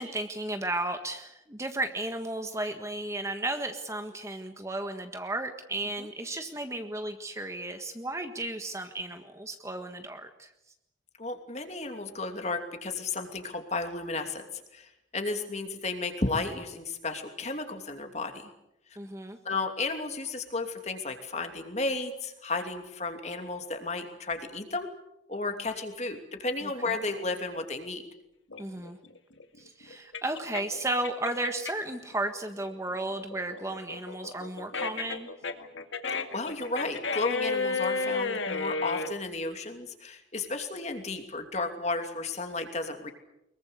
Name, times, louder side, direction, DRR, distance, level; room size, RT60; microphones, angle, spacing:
voice 1, 0.0-10.5 19.0-19.4 28.6-29.0 29.6-35.3, right 2 dB, 15° right, 6 dB, 1.5 m, -34 dB
voice 2, 11.2-18.5 19.4-24.9 25.3-28.0 36.3-43.1, left 3 dB, 35° left, 6 dB, 2.9 m, -33 dB
sound 1, 28.5-31.9 32.3-39.1, left 4 dB, 80° left, 2.2 m, -32 dB
24.5 x 22.5 x 8.2 m, 0.85 s
head